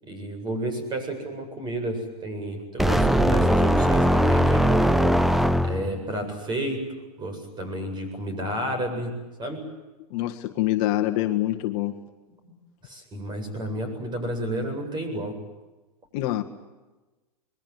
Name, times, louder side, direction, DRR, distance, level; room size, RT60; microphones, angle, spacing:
voice 1, 0.0-5.1 5.6-6.8 7.2-9.1 9.4-9.6 12.8-15.4, right 1 dB, 25° right, 7 dB, 7.8 m, -31 dB
sound 1, 2.8-6.0, equal, ahead, 0.8 m, -20 dB
voice 2, 10.1-12.0 16.1-16.4, left 15 dB, 45° left, 4 dB, 1.8 m, -25 dB
26.0 x 22.0 x 9.6 m, 1.2 s
hypercardioid pair, 120°, 20 cm